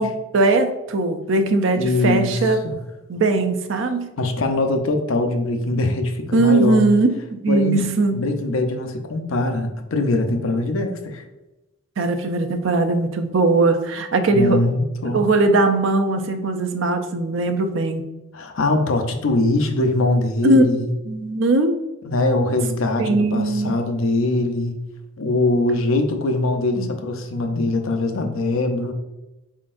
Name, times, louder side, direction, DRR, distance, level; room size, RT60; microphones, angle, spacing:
voice 1, 0.0-2.6 3.1-4.1 6.3-8.3 12.0-14.7 15.1-18.0 20.4-20.7 21.1-21.8 23.0-23.8 26.8-26.9, right 2 dB, 60° right, 7 dB, 0.5 m, -19 dB
voice 2, 1.7-2.8 4.2-6.8 7.5-7.8 8.1-11.3 14.3-15.2 18.3-20.9 22.0-24.8 25.2-28.9, left 2 dB, 70° left, 5 dB, 0.6 m, -22 dB
4.3 x 3.7 x 2.5 m, 1.0 s
head